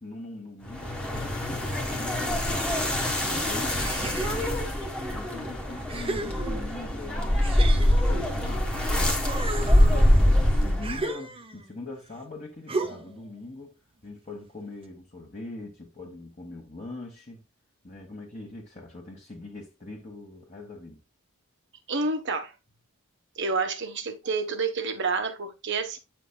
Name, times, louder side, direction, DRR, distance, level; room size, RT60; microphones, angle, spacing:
voice 1, 0.0-4.6 5.1-9.2 9.5-13.8 14.0-17.4 17.8-21.0, left 2 dB, 35° left, 1.4 m, -42 dB
sound 1, 0.7-11.1, left 1 dB, 5° left, 1.3 m, -24 dB
sound 2, 3.8-4.7 5.3-5.4 5.9-6.9 7.4-8.8 9.2-11.7 12.7-13.2, right 3 dB, 25° right, 0.8 m, -35 dB
voice 2, 21.9-22.5 23.4-26.0, right 4 dB, 55° right, 1.2 m, -29 dB
8.4 x 6.0 x 2.2 m
head